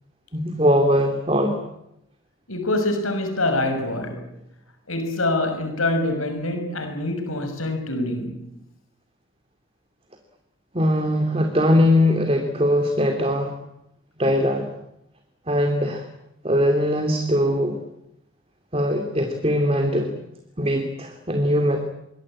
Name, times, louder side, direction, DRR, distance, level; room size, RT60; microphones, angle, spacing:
voice 1, 0.3-1.6 10.7-13.5 14.2-14.7 15.5-16.0 16.4-17.8 18.7-20.1 20.6-21.8, equal, 30° right, 2.8 m, -21 dB
voice 2, 2.5-4.3 4.9-8.5, left 2 dB, 90° left, 6.3 m, -25 dB
26.0 x 23.0 x 8.9 m
head